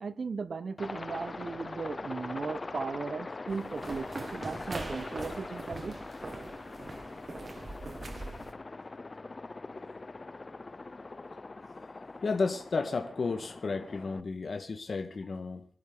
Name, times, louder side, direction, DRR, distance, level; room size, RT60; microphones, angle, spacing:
voice 1, 0.0-6.0, right 4 dB, 60° right, 13 dB, 1.3 m, -37 dB
Aircraft, 0.8-14.2, left 3 dB, 35° left, 0.7 m, -42 dB
sound 1, 3.5-8.5, right 2 dB, 45° right, 2.0 m, -42 dB
voice 2, 12.2-15.7, left 4 dB, 60° left, 6 dB, 1.7 m, -32 dB
24.5 x 12.0 x 4.0 m, 0.41 s
wide cardioid pair, 95°, 0 cm